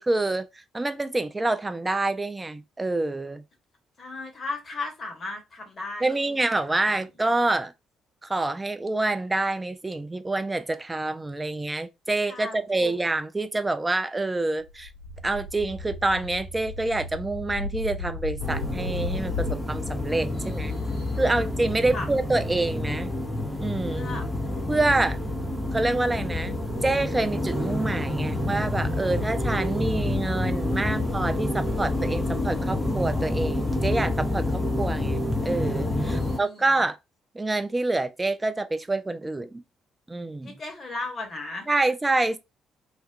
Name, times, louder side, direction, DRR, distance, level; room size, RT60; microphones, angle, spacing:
voice 1, 0.0-3.4 6.0-7.7 8.2-14.9 15.2-20.7 21.2-23.1 23.6-24.1 24.7-25.2 25.7-37.0 37.3-39.6 40.1-40.5 41.7-42.4, right 2 dB, 20° right, 0.3 m, -27 dB
voice 2, 4.0-7.0 12.3-13.0 20.3-21.4 21.9-22.1 23.9-24.3 36.0-36.7 40.4-41.7, left 3 dB, 40° left, 1.0 m, -37 dB
sound 1, 14.7-19.5, left 4 dB, 85° right, 0.6 m, -35 dB
sound 2, 15.0-28.6, right 5 dB, 75° left, 0.6 m, -42 dB
sound 3, 18.4-36.4, left 1 dB, 10° left, 0.7 m, -28 dB
2.3 x 2.2 x 2.5 m
figure-of-eight pair, 45°, 0 cm